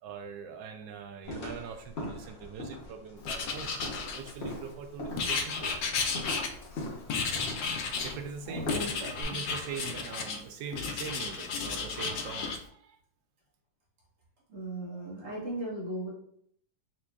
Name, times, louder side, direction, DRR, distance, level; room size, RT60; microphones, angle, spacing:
voice 1, 0.0-5.7 8.0-13.0, right 6 dB, 85° right, 6 dB, 1.3 m, -42 dB
sound 1, 1.2-9.2, left 1 dB, 50° left, 0.9 m, -41 dB
Writing, 3.2-4.6 5.2-6.8 7.1-8.2 8.7-10.4 10.7-12.6, left 5 dB, 85° left, 1.2 m, -33 dB
voice 2, 8.5-8.9 9.3-9.4 14.5-16.1, right 1 dB, 50° right, -4 dB, 1.4 m, -37 dB
4.2 x 2.9 x 2.3 m, 0.66 s
omnidirectional pair, 1.9 m